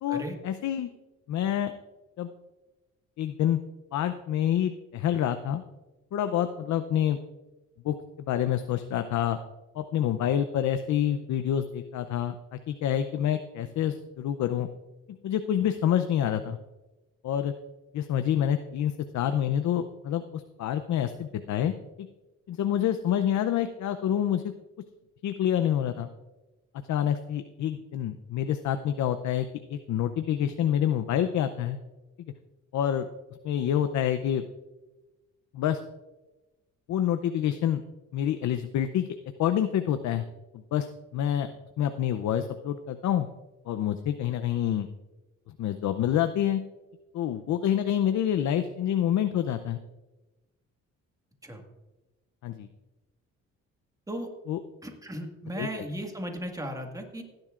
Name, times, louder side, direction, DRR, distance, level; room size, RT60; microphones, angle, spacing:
voice 1, 0.0-0.9 1.3-1.7 2.2-2.3 3.2-3.6 3.9-5.6 6.1-7.2 7.8-8.0 8.3-9.4 9.7-14.7 15.2-16.6 17.2-17.5 17.9-21.7 22.5-24.5 25.2-26.1 26.9-31.8 32.2-32.3 32.7-33.1 33.4-34.4 35.5-35.8 36.9-37.8 38.1-39.1 39.4-40.2 40.5-41.5 41.8-43.3 43.7-44.9 45.6-46.6 47.1-49.8 52.4-52.7 54.5-54.6 55.6-55.8, left 10 dB, 70° left, 9 dB, 0.7 m, -27 dB
voice 2, 54.8-57.2, right 1 dB, 10° right, 3 dB, 1.8 m, -36 dB
16.5 x 10.5 x 2.5 m, 1.1 s
cardioid pair, 90°, 30 cm